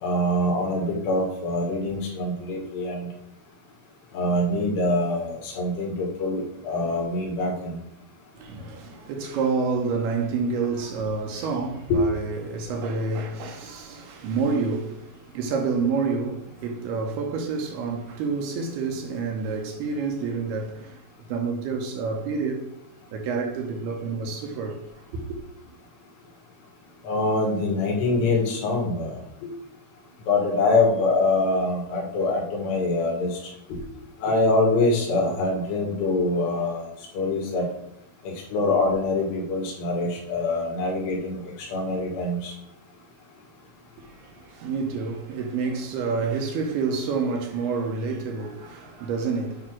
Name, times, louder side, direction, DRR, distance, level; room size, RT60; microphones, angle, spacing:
voice 1, 0.0-3.1 4.1-7.8 11.9-12.0 27.0-29.5 30.3-33.4 33.7-33.8 34.2-36.9 37.1-37.7 38.3-41.4 41.7-42.5, left 2 dB, 70° left, 4.0 m, -24 dB
voice 2, 8.3-21.0 21.3-22.7 23.1-24.8 25.1-25.2 44.0-49.7, right 4 dB, 75° right, 2.7 m, -28 dB
8.6 x 3.6 x 6.1 m
omnidirectional pair, 5.0 m